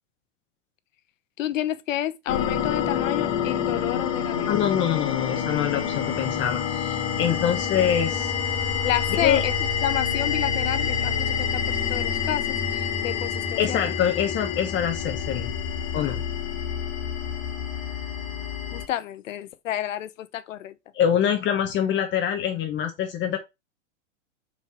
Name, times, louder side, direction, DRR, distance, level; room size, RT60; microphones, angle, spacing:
voice 1, 1.4-4.6 8.8-9.5 9.8-12.5 12.7-13.9 18.7-20.7, left 12 dB, 80° left, 0.9 m, -30 dB
sound 1, 2.3-18.9, left 7 dB, 45° left, 1.8 m, -27 dB
voice 2, 4.5-8.3 9.1-9.4 13.6-15.5 15.9-16.2 20.9-23.4, left 9 dB, 30° left, 1.0 m, -25 dB
5.6 x 4.6 x 4.3 m
hypercardioid pair, 125°, 38 cm